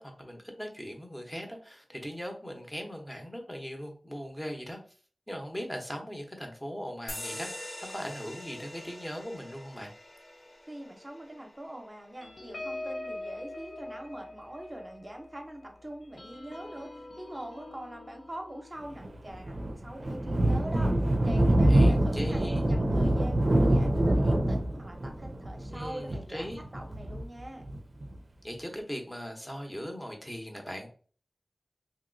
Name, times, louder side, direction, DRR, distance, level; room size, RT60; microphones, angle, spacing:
voice 1, 0.0-4.8 5.3-9.9 21.7-22.7 25.7-26.6 28.4-30.9, equal, 10° left, 3 dB, 0.8 m, -39 dB
sound 1, 7.1-14.1, left 1 dB, 50° left, 0.8 m, -45 dB
voice 2, 10.7-20.9 21.2-22.4 22.7-27.7, right 1 dB, 30° right, 2 dB, 0.8 m, -43 dB
sound 2, 12.2-21.1 21.6-21.8 22.1-22.4, left 1 dB, 90° left, 0.5 m, -44 dB
Thunder, 19.0-28.1, right 1 dB, 60° right, 0.4 m, -25 dB
2.9 x 2.8 x 2.6 m, 0.42 s
wide cardioid pair, 65°, 0 cm